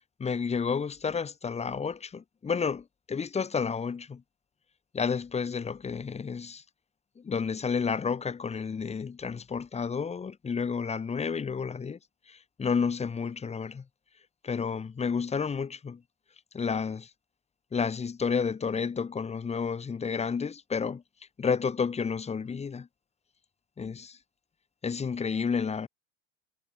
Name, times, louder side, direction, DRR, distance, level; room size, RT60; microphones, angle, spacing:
voice 1, 0.2-4.2 4.9-6.6 7.2-12.0 12.3-13.8 14.4-16.0 16.5-17.1 17.7-21.0 21.4-22.9 23.8-24.2 24.8-25.9, left 5 dB, 20° left, 1.2 m, -31 dB
hypercardioid pair, 85°, 35 cm